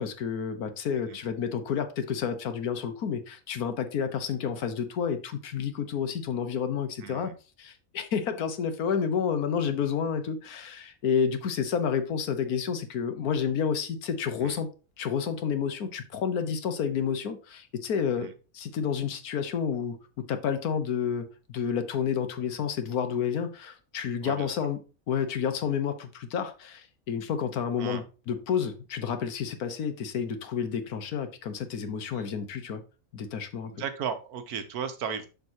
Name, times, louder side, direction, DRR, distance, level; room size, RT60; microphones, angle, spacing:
voice 1, 0.0-7.3 7.6-14.7 15.0-18.3 18.5-24.8 25.1-32.8 33.1-33.7, left 7 dB, 90° left, 1.5 m, -30 dB
voice 2, 7.0-7.4 14.4-14.6 18.2-18.3 24.2-24.5 27.8-28.0 32.1-32.3 33.6-35.3, right 7 dB, 90° right, 1.4 m, -35 dB
7.1 x 6.5 x 2.9 m
omnidirectional pair, 1.5 m